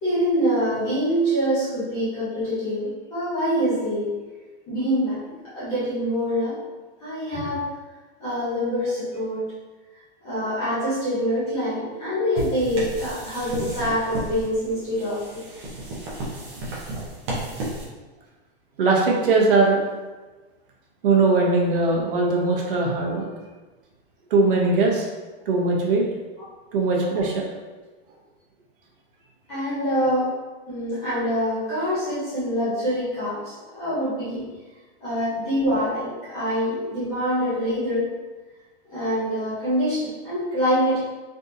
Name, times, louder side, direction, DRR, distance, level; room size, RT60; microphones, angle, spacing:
voice 1, 0.0-4.1 4.7-6.6 7.0-7.7 8.2-9.5 10.2-15.4 29.5-30.3 30.7-34.5 35.0-38.1 38.9-41.0, equal, 10° left, -12 dB, 0.4 m, -25 dB
sound 1, 12.3-17.8, right 1 dB, 25° right, 0.6 m, -33 dB
voice 2, 18.8-19.8 21.0-23.3 24.3-25.1 25.5-26.0 26.7-27.4, right 3 dB, 55° right, -2 dB, 0.9 m, -20 dB
3.5 x 2.7 x 2.5 m, 1.2 s
supercardioid pair, 175°, 32 cm